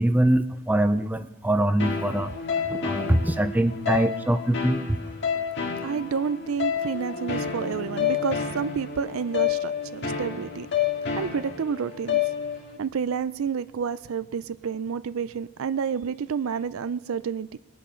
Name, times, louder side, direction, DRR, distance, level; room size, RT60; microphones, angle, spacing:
voice 1, 0.0-2.3 2.7-5.0, right 1 dB, 10° right, 11 dB, 0.4 m, -23 dB
sound 1, 1.8-12.8, left 7 dB, 55° left, 1.8 m, -29 dB
voice 2, 5.8-10.7 11.2-12.3 12.8-17.6, right 6 dB, 75° right, 15 dB, 0.4 m, -29 dB
20.5 x 8.7 x 6.2 m, 0.90 s
head